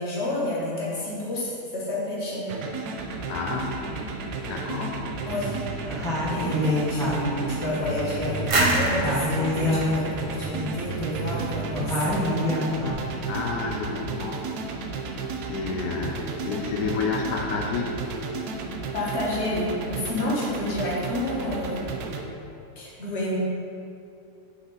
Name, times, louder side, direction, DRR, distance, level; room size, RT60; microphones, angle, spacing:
voice 1, 0.0-2.6 5.3-5.6 6.3-12.2 14.1-14.2 18.9-21.9 22.8-23.4, left 1 dB, 45° left, -6 dB, 1.6 m, -29 dB
sound 1, 2.5-22.2, right 4 dB, 80° right, 1.1 m, -33 dB
voice 2, 3.3-3.8 4.4-5.1 6.3-6.7 12.9-14.4 15.0-15.1 15.4-17.9, left 4 dB, 85° left, 0 dB, 1.2 m, -30 dB
sound 2, 5.0-5.6 5.9-8.6 8.9-10.1 10.3-12.9, equal, 5° left, 0.8 m, -28 dB
sound 3, 8.5-11.2, right 2 dB, 55° right, 0.3 m, -26 dB
7.9 x 4.0 x 3.8 m, 2.6 s
omnidirectional pair, 1.6 m